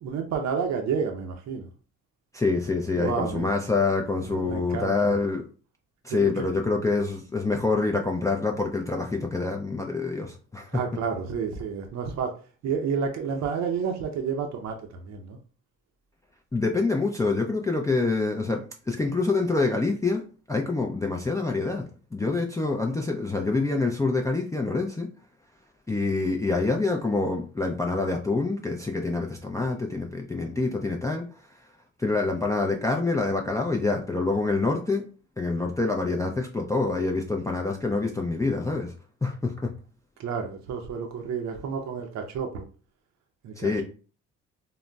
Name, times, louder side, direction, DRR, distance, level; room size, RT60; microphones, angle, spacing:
voice 1, 0.0-1.7 2.9-3.5 4.3-5.1 6.1-6.5 10.7-12.3 12.6-15.4 40.2-42.6 43.4-43.8, right 6 dB, 65° right, 0.6 m, -30 dB
voice 2, 2.3-5.5 6.0-10.8 16.5-20.2 20.5-25.1 25.9-31.2 32.0-35.0 35.4-38.9 39.2-39.7 43.6-43.8, left 3 dB, 10° left, 0.4 m, -26 dB
3.8 x 2.0 x 2.2 m
cardioid pair, 90°, 30 cm